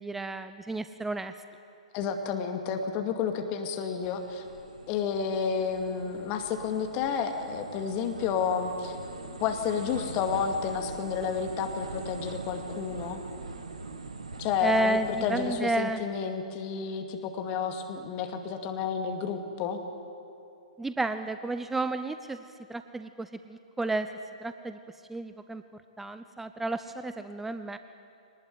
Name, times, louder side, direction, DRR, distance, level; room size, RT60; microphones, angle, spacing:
voice 1, 0.0-1.3 14.6-16.0 20.8-22.4 22.7-24.1 24.4-24.8 25.1-25.6 26.0-27.8, right 2 dB, 5° right, 10 dB, 0.7 m, -31 dB
voice 2, 1.9-4.4 4.9-9.0 9.4-13.2 14.4-19.8, left 6 dB, 30° left, 5 dB, 2.3 m, -31 dB
sound 1, 4.0-15.6, right 3 dB, 70° right, 2.0 m, -42 dB
23.5 x 19.5 x 9.3 m, 2.6 s
figure-of-eight pair, 115°, 4 cm